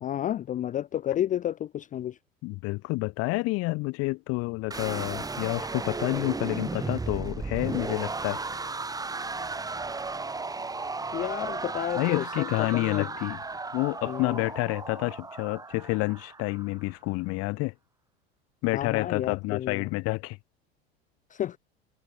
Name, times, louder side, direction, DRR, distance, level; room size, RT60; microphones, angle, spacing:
voice 1, 0.0-2.1 11.1-13.1 14.0-14.4 18.7-19.9 21.3-21.6, left 11 dB, 25° left, 0.6 m, -31 dB
voice 2, 2.4-8.5 12.0-13.4 13.7-17.7 18.6-20.4, left 24 dB, 50° left, 2.4 m, -29 dB
sound 1, 4.7-16.8, right 3 dB, 10° right, 1.7 m, -35 dB
figure-of-eight pair, 80°, 30 cm